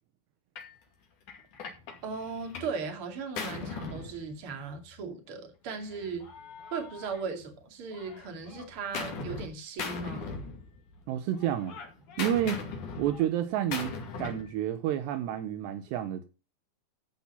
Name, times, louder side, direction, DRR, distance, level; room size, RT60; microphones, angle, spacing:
Gunshot gunfire, 0.6-0.8 1.3-2.8 3.1-4.8 5.7-7.6 7.9-9.5 9.8-11.0 11.3-14.5, left 4 dB, 50° left, 3.4 m, -40 dB
voice 1, 2.0-6.2 6.7-10.3, right 5 dB, 35° right, 2.7 m, -37 dB
voice 2, 11.1-11.8 12.2-12.6 13.0-16.3, right 11 dB, 80° right, 3.0 m, -30 dB
15.0 x 6.0 x 5.6 m
omnidirectional pair, 5.2 m